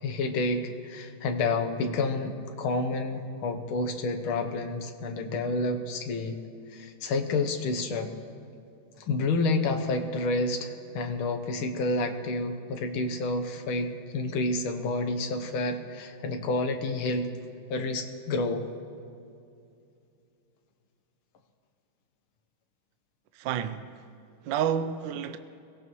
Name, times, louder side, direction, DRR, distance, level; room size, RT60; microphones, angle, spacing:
voice 1, 0.0-6.4 6.7-8.1 9.0-17.3 17.7-18.7, left 3 dB, 75° left, 1.9 m, -29 dB
voice 2, 23.4-23.9 24.4-25.4, right 9 dB, 70° right, 1.2 m, -29 dB
23.5 x 17.5 x 3.2 m
omnidirectional pair, 2.3 m